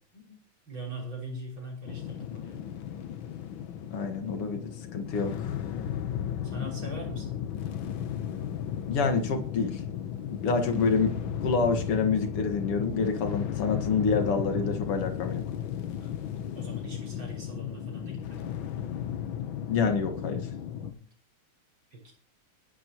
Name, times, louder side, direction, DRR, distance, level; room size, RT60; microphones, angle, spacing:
voice 1, 0.1-2.6 6.4-7.4 16.0-18.4 20.8-21.1 21.9-22.1, right 1 dB, 60° right, -1 dB, 6.7 m, -42 dB
sound 1, 1.9-20.9, left 9 dB, 65° left, 1.7 m, -35 dB
voice 2, 3.9-5.5 8.9-9.8 10.3-15.4 19.7-20.5, left 4 dB, 90° left, 5 dB, 2.7 m, -27 dB
22.0 x 11.5 x 3.0 m, 0.40 s
omnidirectional pair, 2.4 m